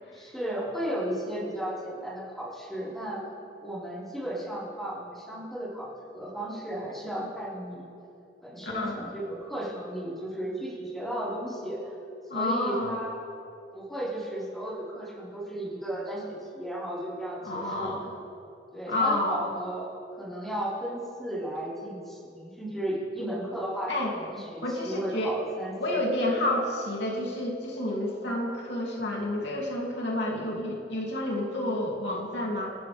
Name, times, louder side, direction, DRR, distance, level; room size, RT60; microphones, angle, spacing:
voice 1, 0.1-3.2 3.6-5.9 6.1-7.8 8.4-11.8 12.3-13.2 13.7-18.0 18.7-26.1 26.4-26.5, right 1 dB, ahead, -8 dB, 4.5 m, -34 dB
voice 2, 8.6-9.0 12.3-13.0 17.4-18.1 18.9-19.4 23.9-24.1 24.6-25.3 25.8-32.7, left 1 dB, 75° left, -2 dB, 2.7 m, -29 dB
27.5 x 13.5 x 3.5 m, 2.6 s
head